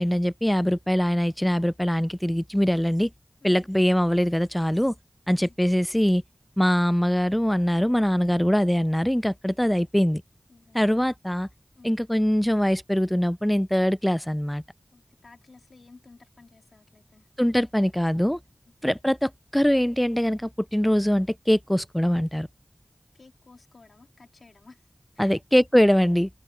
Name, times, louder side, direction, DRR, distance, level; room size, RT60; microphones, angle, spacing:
voice 1, 0.0-3.1 3.4-4.9 5.3-6.2 6.6-10.2 10.7-11.5 11.8-14.6 17.4-18.4 18.8-22.5 25.2-26.3, equal, 5° left, 0.3 m, -22 dB
voice 2, 10.5-10.9 11.7-12.0 14.9-17.3 23.1-24.9 25.1-25.4, left 3 dB, 85° left, 3.4 m, -53 dB
cardioid pair, 40°, 0 cm